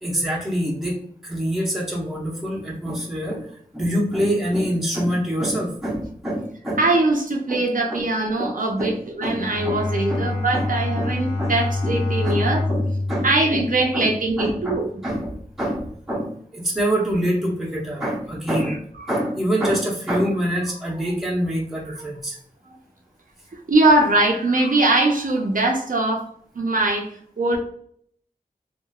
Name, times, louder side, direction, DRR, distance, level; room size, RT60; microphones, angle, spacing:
voice 1, 0.0-3.5 3.7-6.8 7.5-7.6 7.9-8.0 8.4-8.5 8.8-8.9 9.2-9.4 9.6-9.8 10.1-10.2 10.5-10.7 11.0-11.1 11.4-11.5 11.8-12.0 12.2-12.4 12.7-13.7 13.9-14.1 14.4-18.8 19.1-22.4, equal, ahead, -3 dB, 0.8 m, -25 dB
voice 2, 6.8-12.6 13.2-14.9 18.7-18.8 21.9-22.0 23.7-26.3 26.6-27.1 27.4-27.6, right 2 dB, 65° right, 0 dB, 0.6 m, -21 dB
Bowed string instrument, 9.2-14.5, left 2 dB, 75° left, 0.9 m, -26 dB
2.8 x 2.4 x 2.3 m, 0.64 s
cardioid pair, 45°, 15 cm